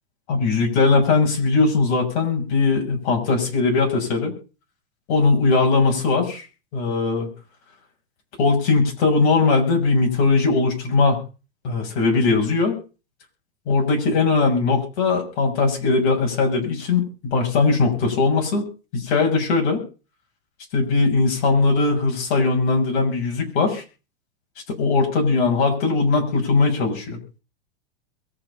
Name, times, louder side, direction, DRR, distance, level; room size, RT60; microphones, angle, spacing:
voice 1, 0.3-4.3 5.1-6.5 6.7-7.3 8.4-11.2 11.6-12.8 13.7-17.0 17.3-18.6 18.9-19.8 20.7-23.8 24.7-27.2, left 3 dB, 50° left, 0 dB, 7.0 m, -20 dB
23.0 x 8.0 x 5.7 m, 0.37 s
supercardioid pair, 160°, 32 cm